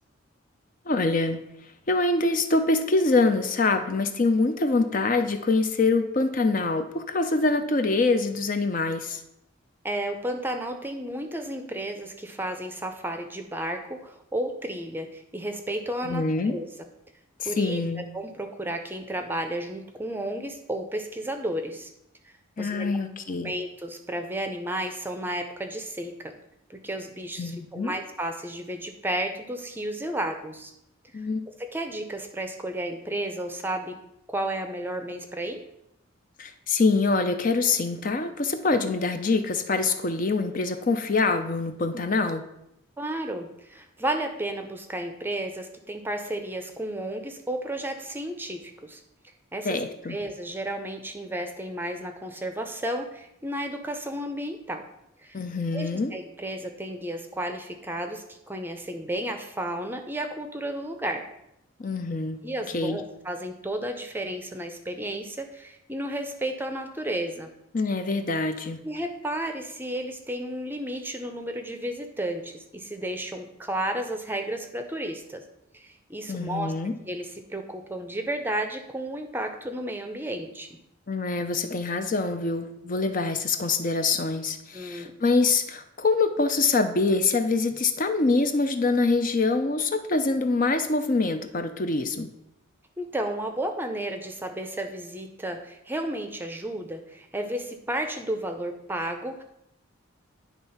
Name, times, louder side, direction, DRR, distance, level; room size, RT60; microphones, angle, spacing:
voice 1, 0.9-1.4 1.9-9.2 16.0-16.6 17.4-18.0 22.6-23.5 27.4-27.9 31.1-31.4 36.4-42.5 49.6-50.2 55.3-56.1 61.8-62.5 62.7-63.0 67.7-68.8 76.3-76.9 81.1-92.3, left 3 dB, 40° left, 8 dB, 0.5 m, -25 dB
voice 2, 9.8-16.7 17.4-17.8 18.1-21.9 22.2-23.0 23.4-26.3 26.7-30.7 31.6-34.0 34.3-35.6 43.0-49.0 49.5-54.8 55.2-55.4 55.7-61.2 62.4-67.5 68.8-75.4 75.7-76.7 77.1-80.8 84.7-85.1 93.0-99.4, right 1 dB, 10° right, 6 dB, 0.6 m, -32 dB
10.5 x 3.5 x 5.6 m, 0.82 s
head